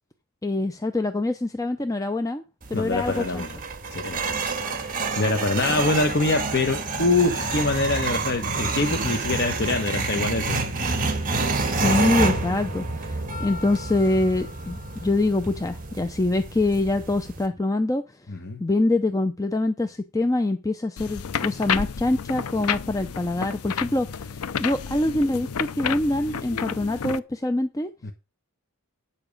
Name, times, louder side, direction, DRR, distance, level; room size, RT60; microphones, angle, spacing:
voice 1, 0.4-2.4 2.7-3.5 5.7-5.8 11.7-18.0 18.6-27.9, left 2 dB, 15° left, 0.5 m, -25 dB
sound 1, 2.6-17.5, right 3 dB, 40° right, 1.8 m, -28 dB
voice 2, 2.7-3.5 3.9-10.7 18.3-18.6 28.0-28.1, left 2 dB, 50° left, 1.0 m, -25 dB
sound 2, 21.0-27.2, left 7 dB, 90° left, 0.5 m, -30 dB
9.7 x 7.0 x 5.3 m
head